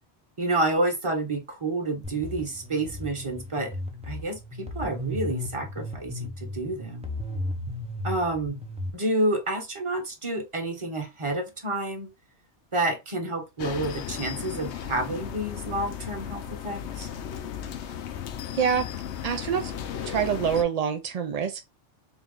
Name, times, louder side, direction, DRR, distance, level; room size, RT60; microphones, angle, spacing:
voice 1, 0.4-3.7 4.0-7.1 8.0-8.6 8.9-12.1 12.7-17.1, right 2 dB, 30° right, 1.0 m, -29 dB
sound 1, 2.0-8.9, left 1 dB, 10° right, 0.5 m, -35 dB
sound 2, 13.6-20.6, left 9 dB, 80° left, 0.9 m, -35 dB
voice 2, 18.5-18.9 19.2-19.7 20.0-21.6, right 7 dB, 60° right, 0.4 m, -26 dB
3.9 x 2.3 x 3.6 m
omnidirectional pair, 1.1 m